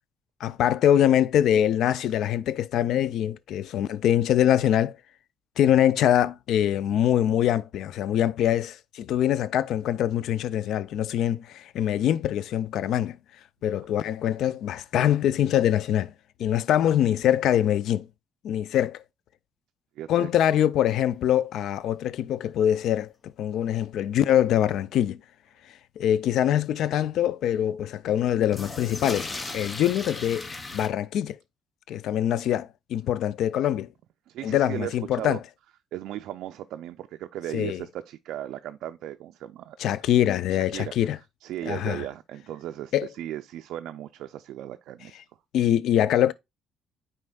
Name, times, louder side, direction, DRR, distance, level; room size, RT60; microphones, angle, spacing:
voice 1, 0.4-5.0 5.6-13.2 13.6-16.1 16.4-18.1 18.4-19.0 20.1-23.1 23.4-25.2 26.0-29.3 29.5-31.4 31.9-33.9 34.4-35.4 37.5-37.8 39.8-41.2 41.7-42.0 42.9-43.1 45.5-46.3, left 11 dB, 80° left, 0.3 m, -23 dB
voice 2, 20.0-20.3 34.3-35.4 35.9-39.8 40.5-40.9 41.4-45.2, right 12 dB, 85° right, 0.3 m, -36 dB
sound 1, 21.4-21.5 21.7-21.8 22.1-22.2 22.8-22.9 28.4-30.9, left 3 dB, 30° left, 0.8 m, -37 dB
9.7 x 4.3 x 2.2 m
cardioid pair, 90°, 0 cm